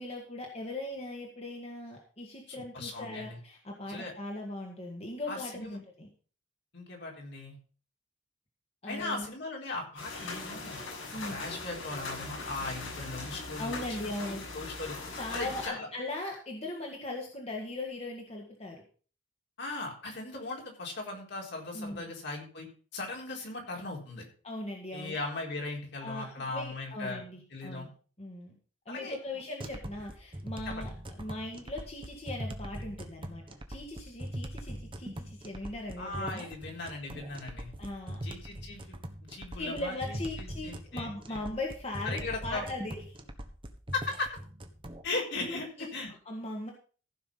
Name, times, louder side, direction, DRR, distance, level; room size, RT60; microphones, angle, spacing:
voice 1, 0.0-6.1 8.8-9.3 11.1-11.4 13.6-14.4 15.1-18.8 21.7-22.1 24.4-25.1 26.0-27.9 28.2-28.5 28.9-36.5 37.8-38.2 39.5-42.9 45.4-45.9 46.3-46.7, left 2 dB, 35° left, -1 dB, 2.0 m, -39 dB
voice 2, 2.5-3.4 3.9-4.1 5.3-5.8 6.7-7.5 8.9-10.8 11.3-13.7 14.3-15.0 15.3-15.9 19.6-22.7 22.9-24.3 24.9-27.2 27.5-27.9 28.9-29.2 30.7-30.9 36.0-37.7 38.2-39.0 39.3-41.4 42.0-42.6 43.9-44.3 45.0-46.1, left 3 dB, 60° left, 0 dB, 4.1 m, -38 dB
sound 1, 10.0-15.7, left 3 dB, 85° left, 6.7 m, -40 dB
sound 2, 29.6-45.0, equal, 25° right, 1.3 m, -41 dB
15.0 x 6.0 x 5.6 m, 0.39 s
head